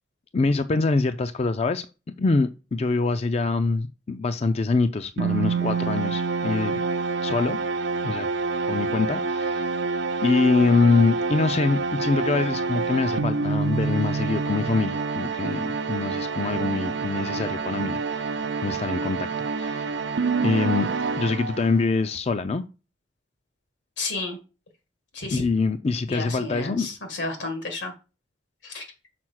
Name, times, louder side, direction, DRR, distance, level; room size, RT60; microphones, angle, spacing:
voice 1, 0.3-1.9 2.2-6.8 7.2-7.6 8.0-8.3 8.7-9.7 10.2-19.3 19.6-19.9 20.4-20.9 21.2-22.6 25.3-26.9, left 3 dB, 35° left, 0.4 m, -24 dB
sound 1, 5.2-21.9, right 4 dB, 75° right, 0.6 m, -27 dB
voice 2, 24.0-24.4 25.1-25.4 26.1-27.9 28.6-28.8, left 3 dB, 85° left, 2.1 m, -31 dB
5.9 x 4.2 x 6.3 m
head